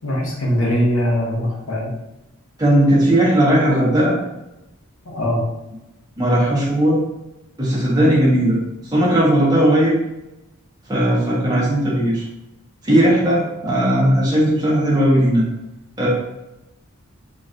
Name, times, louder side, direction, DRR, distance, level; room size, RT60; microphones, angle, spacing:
voice 1, 0.0-1.9 5.1-5.4, equal, 65° left, -1 dB, 0.9 m, -21 dB
voice 2, 2.6-4.1 6.2-7.0 7.6-8.6 8.9-9.9 10.9-12.2 12.8-15.4 16.0-16.1, right 1 dB, 20° right, -7 dB, 1.2 m, -16 dB
4.1 x 3.0 x 2.5 m, 0.93 s
head